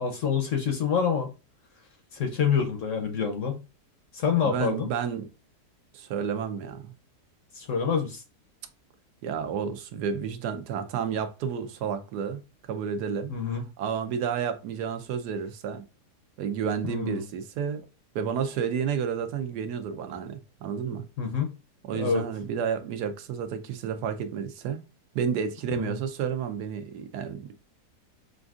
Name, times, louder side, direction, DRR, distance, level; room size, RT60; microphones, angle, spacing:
voice 1, 0.0-1.3 2.1-3.6 4.1-4.9 7.5-8.2 13.3-13.6 16.9-17.2 21.2-21.5 21.9-22.2 25.8-26.0, left 6 dB, 60° left, 0.9 m, -27 dB
voice 2, 4.4-5.3 5.9-6.9 9.2-12.4 12.7-13.3 13.8-15.8 16.4-17.9 18.1-21.1 21.9-24.8 25.1-27.5, right 7 dB, 80° right, 1.2 m, -31 dB
5.9 x 2.6 x 2.3 m
omnidirectional pair, 1.7 m